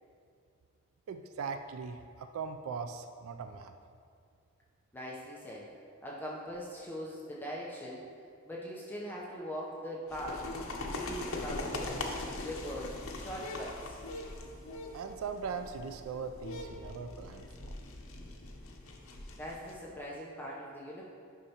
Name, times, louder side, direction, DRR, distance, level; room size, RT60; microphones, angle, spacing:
voice 1, 1.1-3.7 14.9-17.8, right 5 dB, 80° right, 7 dB, 0.3 m, -40 dB
voice 2, 4.9-5.7 6.0-8.0 8.5-10.5 10.8-12.1 12.4-14.0 19.4-21.0, equal, 10° left, -5 dB, 0.7 m, -41 dB
sound 1, 10.1-19.7, left 2 dB, 75° left, 0.8 m, -41 dB
9.8 x 5.7 x 2.9 m, 2.3 s
head